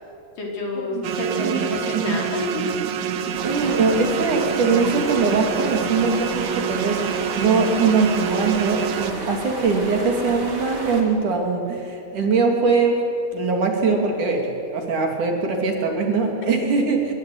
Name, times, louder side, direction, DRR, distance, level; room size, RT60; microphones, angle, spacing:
voice 1, 0.4-2.7 3.3-3.4, left 2 dB, 65° left, -1 dB, 6.4 m, -29 dB
sound 1, 1.0-9.1, right 7 dB, 75° right, 2.8 m, -27 dB
rushing stream in the woods, 3.3-11.0, right 2 dB, 30° right, 3.2 m, -33 dB
voice 2, 3.4-13.0 13.3-17.1, right 4 dB, 60° right, 2 dB, 4.5 m, -22 dB
24.5 x 23.0 x 9.6 m, 2.7 s
omnidirectional pair, 4.1 m